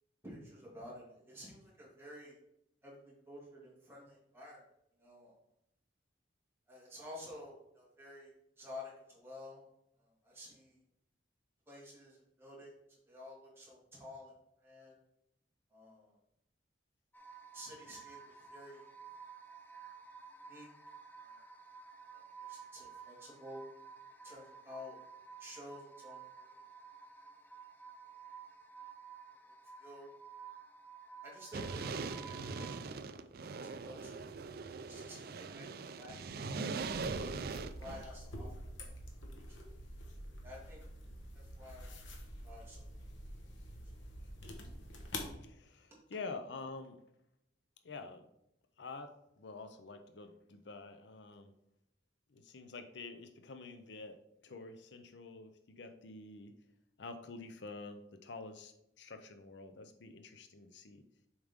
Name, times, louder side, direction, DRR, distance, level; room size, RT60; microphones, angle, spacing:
voice 1, 0.2-2.4 2.8-4.6 5.0-5.3 6.7-9.6 10.0-10.8 11.7-14.3 14.6-14.9 15.7-16.2 17.5-18.9 20.5-20.7 21.2-21.4 22.1-23.6 24.2-25.0 25.4-26.2 26.5-26.6 29.8-30.1 31.2-33.2 33.5-34.2 34.6-36.2 37.5-38.5 40.4-40.8 41.3-41.9 42.4-42.9, left 1 dB, 15° right, -5 dB, 2.4 m, -51 dB
sound 1, 17.1-32.8, right 6 dB, 10° left, 0.5 m, -53 dB
sound 2, 31.5-38.0, right 4 dB, 55° right, 0.4 m, -41 dB
sound 3, 36.8-45.3, left 1 dB, 85° left, 1.2 m, -47 dB
voice 2, 45.4-47.0 47.8-48.2 48.8-49.1 49.4-51.5 52.3-56.5 57.0-61.0, left 3 dB, 70° left, 8 dB, 0.6 m, -48 dB
7.1 x 4.8 x 3.6 m, 0.81 s
head